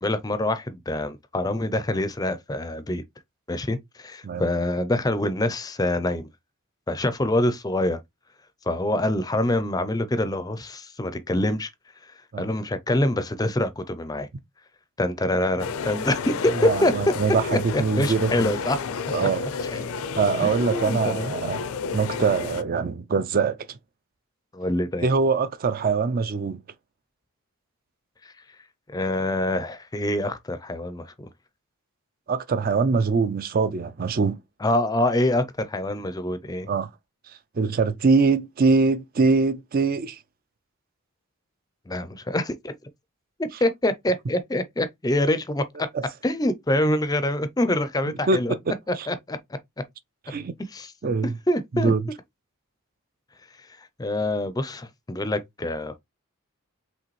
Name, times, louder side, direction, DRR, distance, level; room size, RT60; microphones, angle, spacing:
voice 1, 0.0-3.0 3.5-6.3 6.9-8.0 8.7-11.7 12.4-14.3 15.0-16.9 17.5-18.8 19.6-19.8 20.4-21.3 24.5-25.1 28.9-31.3 34.6-36.7 41.9-42.7 43.6-45.9 46.2-48.5 49.1-49.4 50.7-50.9 51.5-51.9 54.0-56.0, left 1 dB, 15° left, 0.5 m, -25 dB
sound 1, 15.6-22.6, left 5 dB, 70° left, 0.5 m, -31 dB
voice 2, 16.5-18.5 19.1-19.5 20.2-21.6 21.9-23.8 25.0-26.6 32.3-34.4 36.7-36.9 37.6-40.2 45.9-46.0 48.3-49.1 50.3-50.5 51.0-51.3 51.7-52.0, right 4 dB, 40° right, 0.4 m, -23 dB
4.9 x 3.4 x 3.1 m
head